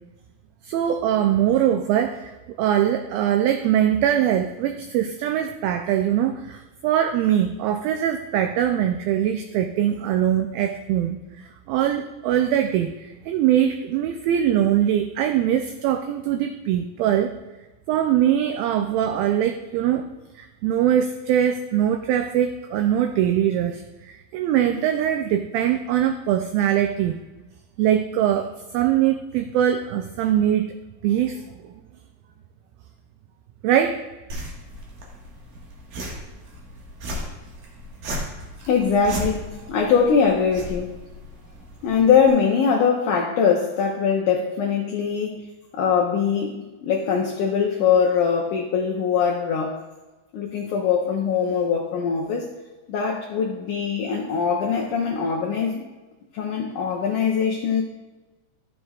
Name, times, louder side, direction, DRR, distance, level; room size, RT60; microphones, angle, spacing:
voice 1, 0.6-2.3 2.6-17.3 17.9-20.1 20.4-27.2 27.8-30.7 31.0-31.7 33.6-34.0, right 10 dB, 90° right, 6 dB, 2.1 m, -22 dB
sound 1, 34.3-42.3, equal, 60° right, 2.9 m, -36 dB
voice 2, 38.7-40.9 41.8-45.5 45.7-49.8 50.3-52.5 52.9-55.8 56.3-57.8, left 6 dB, 85° left, -1 dB, 1.7 m, -22 dB
13.0 x 7.7 x 2.4 m, 1.2 s
omnidirectional pair, 4.8 m